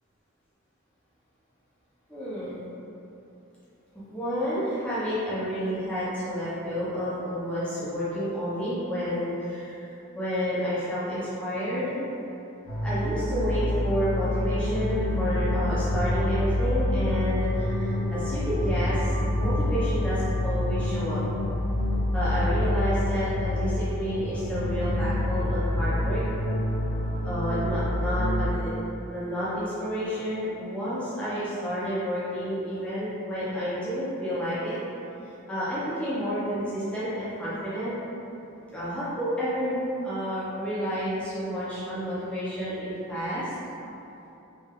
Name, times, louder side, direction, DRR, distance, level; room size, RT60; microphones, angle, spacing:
voice 1, 2.1-2.6 4.1-9.8 10.1-12.0 12.8-20.2 20.4-21.2 22.1-26.2 27.2-28.7 29.1-34.8 35.5-37.9 38.7-43.5, equal, 5° left, -12 dB, 0.8 m, -30 dB
sound 1, 12.7-28.5, left 1 dB, 70° left, 1.2 m, -27 dB
3.2 x 2.7 x 3.7 m, 2.9 s
head